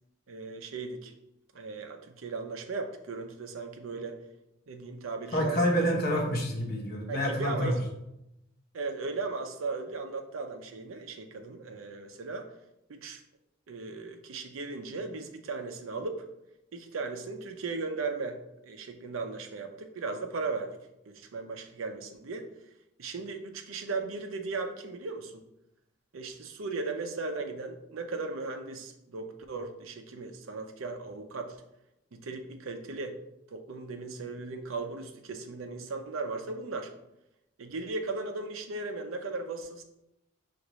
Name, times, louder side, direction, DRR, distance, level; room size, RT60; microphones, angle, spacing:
voice 1, 0.3-1.1 1.5-4.2 4.7-5.9 7.1-7.8 8.7-12.5 12.9-13.2 13.7-16.3 16.7-20.8 21.1-22.5 23.0-25.3 26.1-31.6 32.1-33.2 33.5-36.9 37.6-39.8, right 3 dB, 90° right, 6 dB, 0.6 m, -37 dB
voice 2, 5.3-7.8, equal, 50° left, 0 dB, 0.9 m, -27 dB
6.4 x 2.5 x 3.0 m, 0.87 s
head